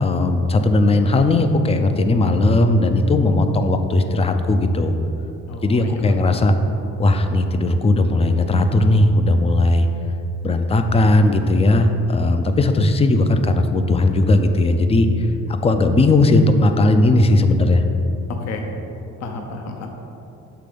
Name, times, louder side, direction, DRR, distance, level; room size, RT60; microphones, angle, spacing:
voice 1, 0.0-4.9 5.6-6.5 7.0-9.9 10.4-17.8, left 2 dB, 20° left, 7 dB, 0.4 m, -17 dB
voice 2, 5.5-6.4 18.5-18.6 19.2-19.9, left 3 dB, 60° left, 3 dB, 0.8 m, -32 dB
6.8 x 3.3 x 5.1 m, 2.8 s
cardioid pair, 95°, 30 cm